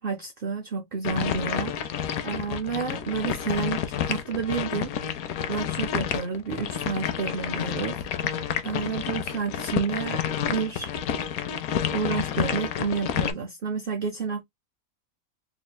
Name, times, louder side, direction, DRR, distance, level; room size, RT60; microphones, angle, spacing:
voice 1, 0.0-4.9 5.5-10.9 11.9-14.4, right 5 dB, 55° right, 0.6 m, -30 dB
sound 1, 1.0-13.3, left 9 dB, 80° left, 1.1 m, -29 dB
3.9 x 3.5 x 2.2 m
omnidirectional pair, 1.5 m